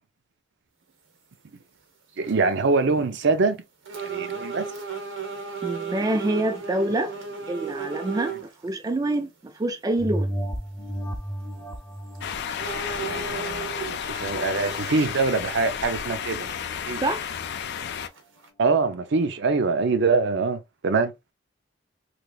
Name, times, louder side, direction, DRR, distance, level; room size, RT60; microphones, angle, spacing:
sound 1, 1.5-1.6 2.1-2.5 3.1-3.2 3.9-8.5 9.1-9.2 11.6-11.7 12.2-12.3 12.6-14.0 14.5-16.3 16.6-16.7 17.4-17.5 18.1-18.5, right 5 dB, 85° right, 0.9 m, -35 dB
voice 1, 2.2-3.6 4.0-4.7 13.0-16.5 16.9-17.0 18.6-21.3, right 4 dB, 65° right, 0.6 m, -24 dB
voice 2, 5.6-7.1 7.5-10.3 17.0-17.3, right 1 dB, 20° right, 0.3 m, -26 dB
sound 2, 10.0-14.9 15.4-15.5, right 1 dB, 5° left, 0.7 m, -34 dB
sound 3, 12.2-18.1, left 8 dB, 60° left, 0.4 m, -32 dB
3.2 x 2.9 x 2.3 m
head